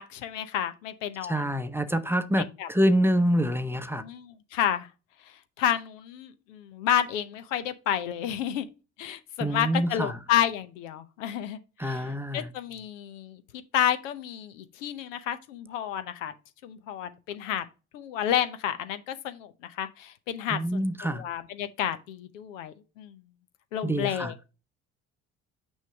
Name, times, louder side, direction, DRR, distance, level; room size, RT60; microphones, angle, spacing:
voice 1, 0.0-1.4 2.6-2.7 4.0-4.9 5.6-8.7 9.0-13.4 13.7-16.3 16.6-17.6 17.9-20.6 21.2-23.2 23.7-24.3, left 10 dB, 80° left, 0.7 m, -30 dB
voice 2, 1.2-4.0 9.4-10.2 11.8-12.5 20.5-21.2 23.8-24.3, equal, 5° right, 0.7 m, -26 dB
6.3 x 5.4 x 3.4 m
hypercardioid pair, 55°, 38 cm